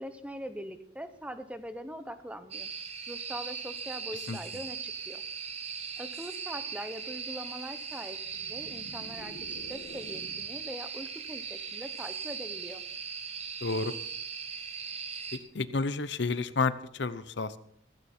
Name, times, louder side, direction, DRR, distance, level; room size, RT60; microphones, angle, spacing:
voice 1, 0.0-2.7 3.1-5.2 6.0-12.8, equal, 5° right, 10 dB, 0.9 m, -42 dB
sound 1, 2.5-15.4, right 6 dB, 35° right, 1.5 m, -39 dB
sound 2, 8.2-10.7, left 1 dB, 85° left, 1.9 m, -49 dB
voice 2, 13.6-13.9 15.3-17.6, left 4 dB, 65° left, 14 dB, 0.8 m, -31 dB
16.0 x 15.0 x 4.4 m, 0.64 s
head